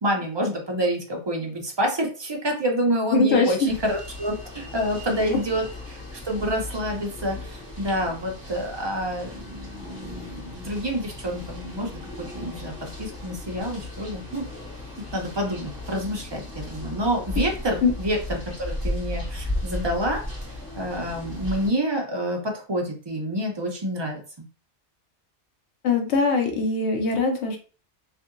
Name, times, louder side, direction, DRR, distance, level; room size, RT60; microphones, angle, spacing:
voice 1, 0.0-14.5 15.1-24.2, equal, 45° right, 1 dB, 0.3 m, -28 dB
voice 2, 3.1-3.5 17.8-17.9 25.8-27.6, left 3 dB, 75° left, 3 dB, 0.9 m, -21 dB
sound 1, 3.7-21.7, left 1 dB, 10° right, 1.3 m, -36 dB
2.7 x 2.5 x 2.5 m, 0.38 s
omnidirectional pair, 1.2 m